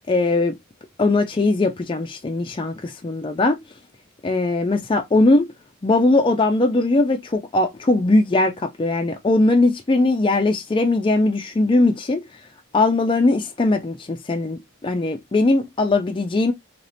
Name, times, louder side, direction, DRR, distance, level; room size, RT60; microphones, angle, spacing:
voice 1, 0.1-0.6 1.0-3.6 4.2-5.5 5.8-12.2 12.7-16.5, left 2 dB, 20° left, 0.4 m, -20 dB
2.9 x 2.6 x 3.3 m
head